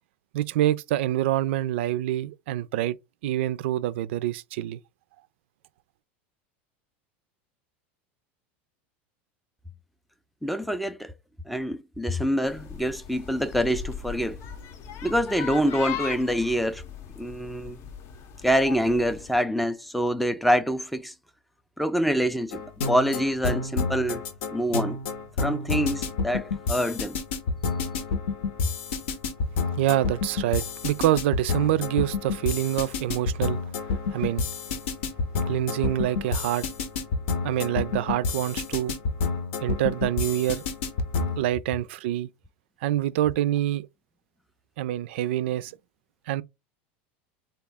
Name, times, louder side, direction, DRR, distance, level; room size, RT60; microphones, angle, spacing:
voice 1, 0.3-3.0 3.2-4.8 29.6-33.6 33.9-34.4 35.5-36.7 37.4-38.9 39.6-40.6 41.4-42.3 42.8-43.9 44.8-45.8 46.3-46.4, right 13 dB, 75° right, 0.4 m, -26 dB
voice 2, 10.4-11.1 11.5-14.4 15.0-16.8 17.2-17.8 18.4-21.1 21.8-24.2 24.5-25.0 25.4-27.2, equal, ahead, 0.3 m, -26 dB
sound 1, 12.5-19.4, left 8 dB, 45° left, 0.6 m, -38 dB
sound 2, 22.5-41.4, left 4 dB, 80° left, 0.8 m, -29 dB
3.6 x 2.3 x 3.4 m
supercardioid pair, 125°, 6 cm